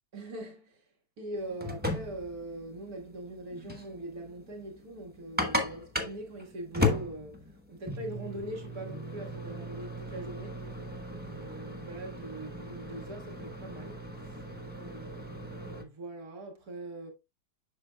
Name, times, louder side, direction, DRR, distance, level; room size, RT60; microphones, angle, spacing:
voice 1, 0.1-0.9 1.2-10.9 11.1-14.4 14.8-17.1, right 1 dB, 55° right, 2.1 m, -42 dB
sound 1, 1.4-15.8, left 2 dB, 10° right, 0.7 m, -36 dB
7.9 x 6.0 x 2.3 m
omnidirectional pair, 1.9 m